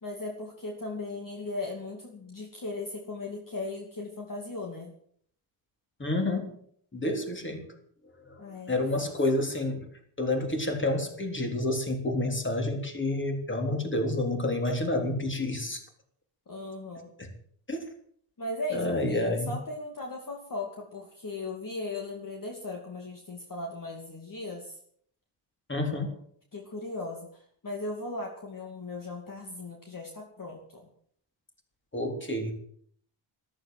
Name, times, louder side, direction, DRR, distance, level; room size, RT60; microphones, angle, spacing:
voice 1, 0.0-4.9 8.4-9.1 16.5-17.1 18.4-24.8 26.5-30.9, left 2 dB, 40° left, 1 dB, 2.6 m, -37 dB
voice 2, 6.0-6.5 6.9-7.7 8.3-9.9 10.2-15.8 17.2-17.3 17.7-17.8 18.7-19.5 25.7-26.2 31.9-32.5, left 2 dB, 25° left, 4 dB, 3.6 m, -29 dB
14.0 x 13.0 x 7.7 m, 0.62 s
wide cardioid pair, 120°, 49 cm